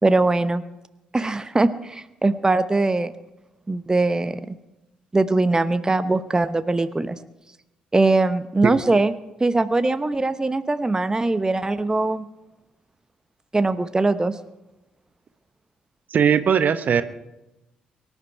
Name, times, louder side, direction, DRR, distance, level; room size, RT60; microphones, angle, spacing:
voice 1, 0.0-0.6 1.1-3.1 3.7-4.5 5.1-7.1 7.9-9.1 9.4-12.3 13.5-14.4, right 2 dB, 15° right, 13 dB, 0.9 m, -21 dB
voice 2, 16.1-17.0, right 7 dB, 45° right, 13 dB, 0.9 m, -19 dB
23.5 x 11.0 x 4.7 m, 0.97 s
figure-of-eight pair, 45°, 4 cm